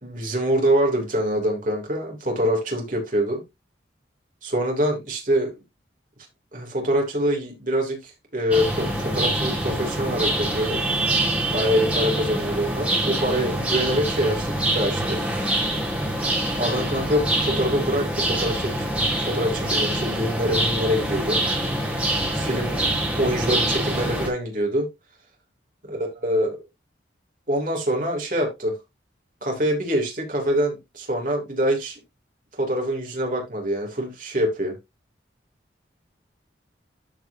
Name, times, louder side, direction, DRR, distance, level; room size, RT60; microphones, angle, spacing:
voice 1, 0.0-3.4 4.4-5.5 6.5-10.8 11.5-15.2 16.6-18.9 19.3-22.0 22.3-22.8 23.2-24.9 25.9-26.6 27.5-28.8 29.4-32.0 32.5-34.7, equal, 45° right, 3.0 m, -25 dB
sound 1, 8.5-24.3, right 1 dB, 5° right, 2.4 m, -25 dB
13.0 x 4.8 x 2.8 m
head